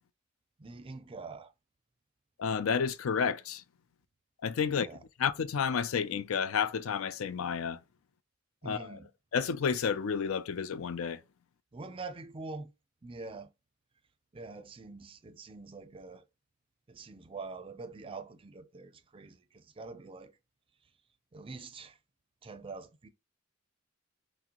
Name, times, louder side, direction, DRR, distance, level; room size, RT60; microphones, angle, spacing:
voice 1, 0.6-1.5 4.7-5.0 8.6-9.1 11.7-12.7 13.0-13.5 14.3-16.2 16.9-20.3 21.3-22.0 22.4-23.1, right 3 dB, 25° right, 0.4 m, -45 dB
voice 2, 2.4-3.6 4.4-7.8 8.6-9.0 9.3-11.2, left 6 dB, 85° left, 0.4 m, -31 dB
5.9 x 2.1 x 2.9 m
head